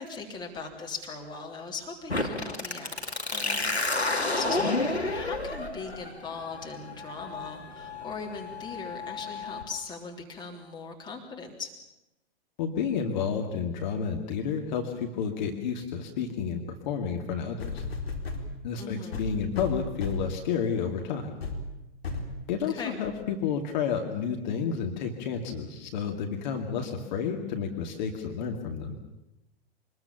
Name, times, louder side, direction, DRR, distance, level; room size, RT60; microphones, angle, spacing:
voice 1, 0.0-3.0 3.3-3.7 4.2-11.7 18.8-19.2 22.7-23.0, left 4 dB, 15° left, 1 dB, 3.4 m, -39 dB
sound 1, 2.1-9.6, left 2 dB, 90° left, 2.6 m, -31 dB
voice 2, 12.6-17.8 18.6-21.3 22.5-29.0, left 6 dB, 45° left, 3 dB, 2.5 m, -31 dB
sound 2, 17.6-18.5 19.1-20.4 20.9-21.0 21.4-21.6 22.0-22.3 23.0-23.1, left 3 dB, 70° left, 3.9 m, -34 dB
24.5 x 20.5 x 7.3 m, 0.94 s
figure-of-eight pair, 110°, 31 cm